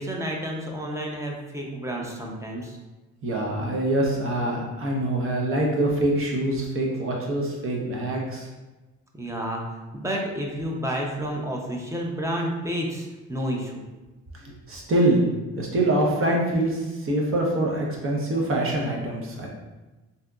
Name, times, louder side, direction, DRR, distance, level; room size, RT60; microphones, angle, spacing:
voice 1, 0.0-2.8 9.1-9.6 9.9-13.8, equal, 10° right, -1 dB, 0.6 m, -30 dB
voice 2, 3.2-8.5 14.4-15.2 15.6-19.5, right 1 dB, 45° right, -1 dB, 0.9 m, -24 dB
3.5 x 2.8 x 2.3 m, 1.1 s
cardioid pair, 90°, 30 cm